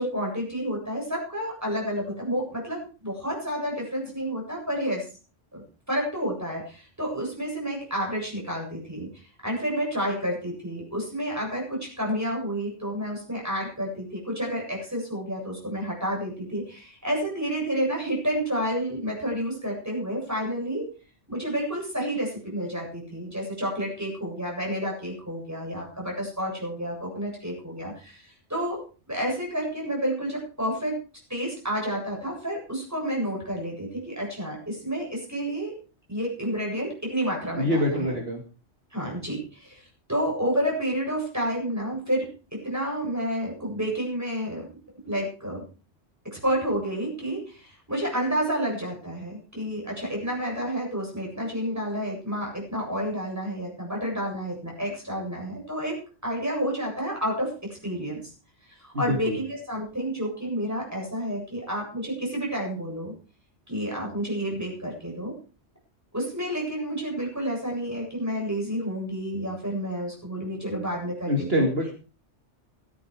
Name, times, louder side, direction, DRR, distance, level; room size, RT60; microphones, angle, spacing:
voice 1, 0.0-5.1 5.5-5.6 5.9-9.1 9.4-20.9 21.3-28.8 29.1-31.0 31.3-35.7 36.1-38.1 38.9-44.7 45.0-45.6 46.2-56.0 56.2-57.5 57.8-58.2 58.7-63.1 63.7-65.3 66.1-71.7, equal, 15° right, -1 dB, 8.1 m, -30 dB
voice 2, 37.6-38.4 58.9-59.4 71.3-71.9, left 1 dB, 55° right, 1 dB, 2.7 m, -25 dB
16.0 x 13.0 x 4.9 m, 0.37 s
omnidirectional pair, 1.2 m